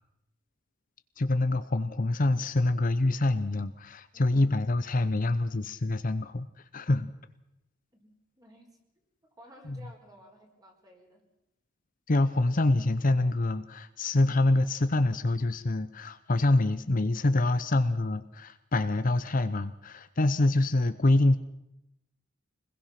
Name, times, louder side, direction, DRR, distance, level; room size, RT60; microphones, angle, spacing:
voice 1, 1.2-6.5 6.7-7.1 9.7-9.8 12.1-21.4, left 2 dB, 45° left, 11 dB, 0.8 m, -26 dB
voice 2, 4.1-4.5 7.9-8.8 9.2-11.2, equal, 20° right, 2 dB, 4.4 m, -55 dB
25.5 x 21.0 x 5.9 m, 0.85 s
head